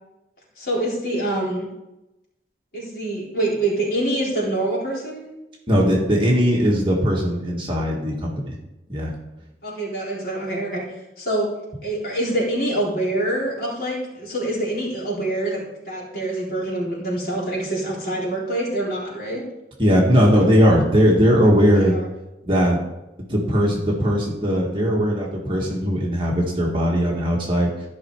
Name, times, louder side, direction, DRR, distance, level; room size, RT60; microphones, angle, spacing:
voice 1, 0.6-1.7 2.7-5.3 9.6-10.8 11.2-11.5 11.8-19.4 21.7-22.1, right 1 dB, 55° left, -5 dB, 3.9 m, -25 dB
voice 2, 5.7-8.6 8.9-9.1 19.8-22.0 22.4-22.8 23.3-27.7, equal, 30° right, -2 dB, 1.9 m, -19 dB
13.0 x 5.7 x 4.7 m, 0.95 s
head